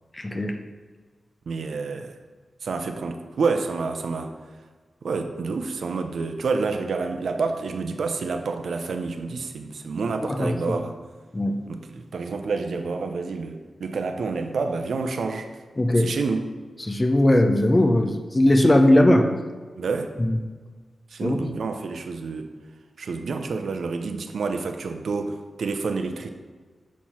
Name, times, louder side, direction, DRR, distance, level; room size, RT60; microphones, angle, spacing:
voice 1, 0.1-0.5 10.3-10.8 11.3-11.6 15.8-16.1 16.8-19.3 20.2-20.4 21.2-21.5, left 1 dB, 20° left, 5 dB, 0.6 m, -19 dB
voice 2, 1.5-2.1 2.6-4.3 5.0-11.0 11.7-15.5 16.0-16.5 19.8-20.1 21.1-22.5 23.0-26.3, right 4 dB, 75° right, 6 dB, 0.6 m, -28 dB
7.0 x 4.5 x 4.3 m, 1.4 s
wide cardioid pair, 105°, 0 cm